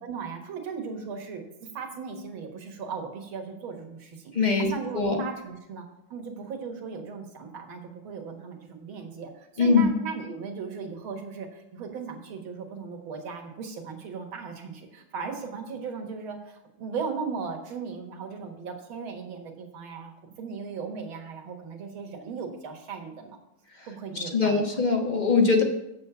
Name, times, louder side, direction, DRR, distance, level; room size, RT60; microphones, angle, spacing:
voice 1, 0.0-4.3 4.6-5.9 6.1-23.4 23.8-24.8, right 5 dB, 75° right, 3 dB, 2.3 m, -37 dB
voice 2, 4.3-5.2 9.6-9.9 24.1-25.6, left 4 dB, 30° left, 2 dB, 1.0 m, -22 dB
7.7 x 7.2 x 6.9 m, 0.86 s
omnidirectional pair, 2.2 m